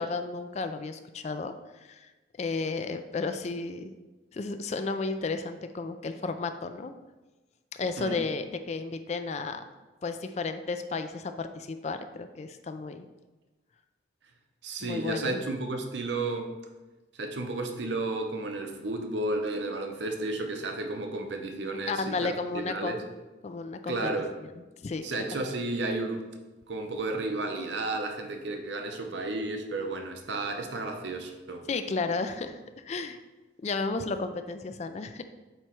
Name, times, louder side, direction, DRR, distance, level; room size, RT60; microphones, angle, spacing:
voice 1, 0.0-2.1 2.4-4.0 4.3-6.9 7.8-9.6 10.0-13.1 14.8-15.4 21.9-23.0 23.4-24.1 24.8-25.0 31.7-32.6 32.8-33.2 33.6-35.2, left 3 dB, 35° left, 9 dB, 0.3 m, -33 dB
voice 2, 14.6-16.5 17.2-23.0 23.9-24.3 25.0-26.3 26.7-31.7, right 2 dB, 70° right, 4 dB, 0.8 m, -32 dB
8.0 x 3.1 x 4.4 m, 1.1 s
head